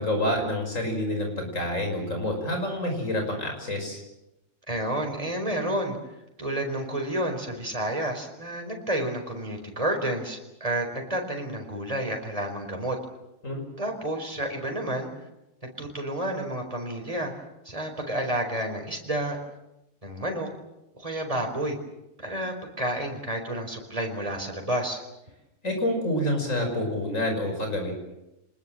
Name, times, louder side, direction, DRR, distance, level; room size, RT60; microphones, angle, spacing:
voice 1, 0.0-4.0 13.4-13.6 25.6-28.0, left 1 dB, 85° left, 4 dB, 6.2 m, -28 dB
voice 2, 4.7-6.0 6.4-13.0 13.8-15.1 15.6-17.3 17.6-19.4 20.0-20.5 20.9-21.8 22.2-25.0, right 1 dB, 25° right, 3 dB, 4.6 m, -30 dB
26.0 x 20.5 x 7.6 m, 0.93 s
omnidirectional pair, 1.3 m